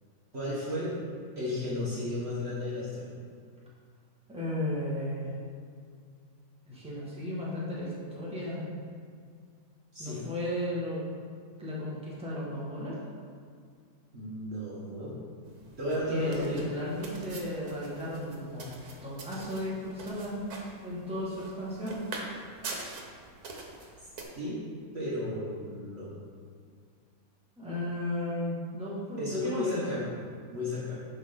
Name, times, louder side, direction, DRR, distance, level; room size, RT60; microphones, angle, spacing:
voice 1, 0.3-1.0 1.4-3.1 9.9-10.2 14.1-15.2 15.8-16.6 24.3-24.6 24.9-26.1 29.2-30.1 30.5-30.9, left 1 dB, 45° right, -7 dB, 1.6 m, -33 dB
voice 2, 4.3-5.3 6.7-8.6 10.0-11.0 11.6-13.0 15.9-20.4 20.8-22.0 27.6-29.8, left 1 dB, 5° right, -8 dB, 1.9 m, -35 dB
sound 1, 15.4-24.2, right 3 dB, 85° right, 1.6 m, -44 dB
10.5 x 4.5 x 3.9 m, 2.1 s
omnidirectional pair, 1.6 m